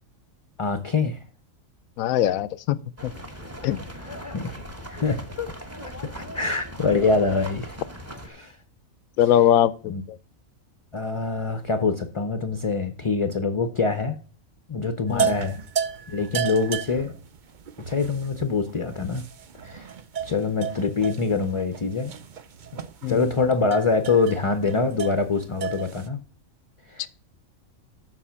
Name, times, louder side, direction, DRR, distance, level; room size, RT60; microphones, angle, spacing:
voice 1, 0.6-1.2 4.0-4.6 4.9-5.5 6.2-7.7 8.3-8.6 9.9-10.0 10.9-14.2 14.7-15.6 16.1-17.1 17.9-19.2 19.6-19.9 20.2-22.1 22.7-26.2 26.9-27.1, left 4 dB, 35° left, 0.5 m, -25 dB
voice 2, 2.0-2.8 3.0-3.1 3.6-3.8 9.2-10.2 15.1-15.3 23.0-23.3 27.0-27.1, left 11 dB, 85° left, 1.0 m, -21 dB
sound 1, 3.0-8.3, equal, 10° right, 1.0 m, -39 dB
sound 2, 15.1-26.1, right 7 dB, 50° right, 0.6 m, -33 dB
7.4 x 6.1 x 5.7 m
omnidirectional pair, 1.4 m